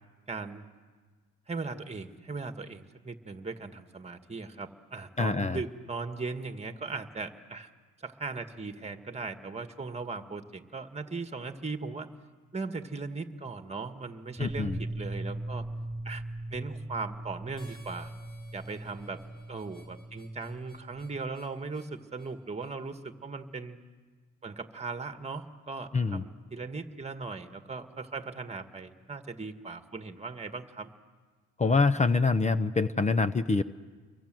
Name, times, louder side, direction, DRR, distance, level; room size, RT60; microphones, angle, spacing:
voice 1, 0.3-0.6 1.5-7.7 8.0-12.1 12.5-15.6 16.0-16.2 16.5-18.1 18.5-19.2 19.5-23.8 24.4-30.9, right 4 dB, 20° right, 7 dB, 1.8 m, -38 dB
voice 2, 5.2-5.6 14.4-14.8 25.9-26.2 31.6-33.6, left 4 dB, 25° left, 14 dB, 0.8 m, -25 dB
sound 1, 14.4-21.2, right 1 dB, 5° right, 3.3 m, -40 dB
Harmonica, 17.6-22.8, left 4 dB, 75° left, 5.2 m, -58 dB
28.5 x 23.5 x 7.7 m, 1.5 s
cardioid pair, 90°, 30 cm